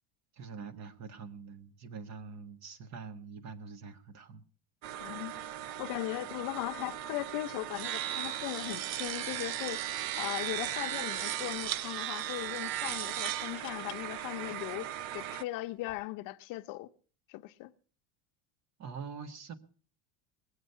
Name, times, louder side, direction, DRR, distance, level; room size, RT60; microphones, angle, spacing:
voice 1, 0.4-4.4 18.8-19.5, right 5 dB, 45° right, 1.4 m, -45 dB
sound 1, 4.8-15.4, right 12 dB, 75° right, 0.7 m, -37 dB
voice 2, 5.0-16.9 17.3-17.7, left 18 dB, 60° left, 0.7 m, -39 dB
sound 2, 12.9-14.0 14.7-14.8 15.7-16.0, left 12 dB, 30° left, 0.9 m, -52 dB
21.0 x 8.2 x 5.6 m
cardioid pair, 135°, 37 cm